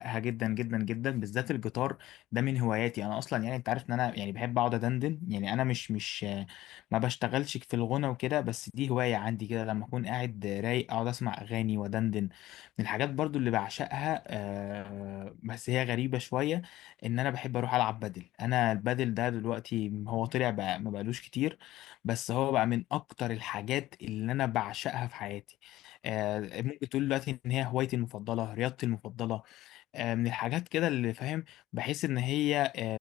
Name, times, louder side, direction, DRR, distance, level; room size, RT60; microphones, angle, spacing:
voice 1, 0.0-33.0, left 16 dB, 85° left, 3.9 m, -32 dB
cardioid pair, 95°, 0 cm